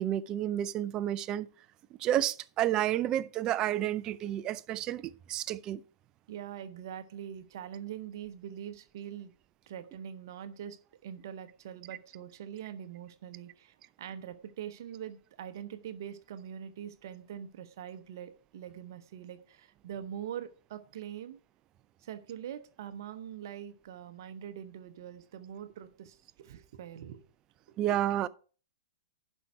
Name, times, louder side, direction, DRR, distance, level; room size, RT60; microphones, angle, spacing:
voice 1, 0.0-1.5 2.0-5.8 27.8-28.3, right 12 dB, 30° right, 0.5 m, -30 dB
voice 2, 6.3-9.3 9.7-21.4 22.0-27.2 27.7-27.8, right 9 dB, 60° right, 0.9 m, -43 dB
11.0 x 5.4 x 4.7 m
hypercardioid pair, 115°, 2 cm